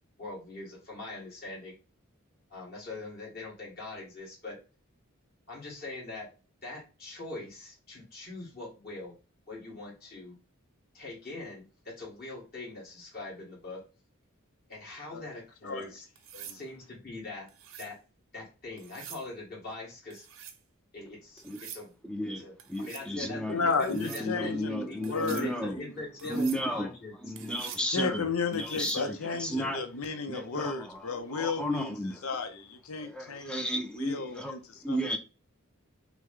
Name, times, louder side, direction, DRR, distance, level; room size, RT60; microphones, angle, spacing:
voice 1, 0.2-1.8 2.5-4.6 5.5-6.3 6.6-9.1 9.5-10.4 10.9-13.8 14.7-16.0 16.5-17.5 17.8-18.0 18.3-20.3 20.9-21.9 22.4-22.5 22.8-27.1, left 2 dB, 45° left, 2.0 m, -42 dB
sound 1, 16.2-16.6 17.5-17.9 18.8-19.3 20.1-20.6 21.4-21.9 22.6-23.1 23.8-24.3 25.0-25.5 26.2-26.6 27.4-27.9 28.5-29.0 31.0-31.2, right 9 dB, 70° right, 0.7 m, -46 dB
voice 2, 22.0-25.8 26.3-26.9 27.2-29.9 30.3-32.3 33.0-34.5 34.8-35.2, equal, 5° left, 0.5 m, -34 dB
voice 3, 23.5-25.9 26.2-26.4 27.9-31.9 32.2-33.7 34.0-34.6 34.9-35.0, left 4 dB, 85° left, 0.7 m, -33 dB
5.9 x 2.2 x 3.7 m
head